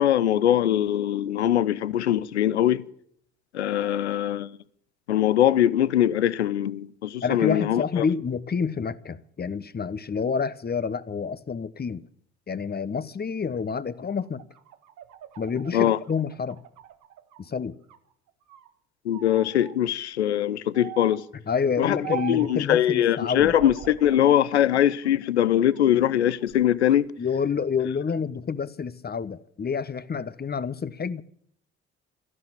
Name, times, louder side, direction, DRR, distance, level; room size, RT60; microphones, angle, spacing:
voice 1, 0.0-2.8 3.5-4.5 5.1-8.1 15.7-16.0 19.1-21.2 21.8-22.0 22.3-27.1, left 11 dB, 85° left, 0.6 m, -22 dB
voice 2, 7.2-12.0 12.5-14.4 15.4-16.6 17.4-17.8 21.5-23.6 27.2-31.2, left 6 dB, 30° left, 1.1 m, -28 dB
sound 1, 14.2-17.5 17.8-18.7 19.1-19.8 20.7-21.3 22.0-22.6 23.3-24.4 24.9-25.8 26.3-27.0, right 11 dB, 60° right, 1.6 m, -41 dB
14.5 x 11.0 x 8.9 m
figure-of-eight pair, 45°, 32 cm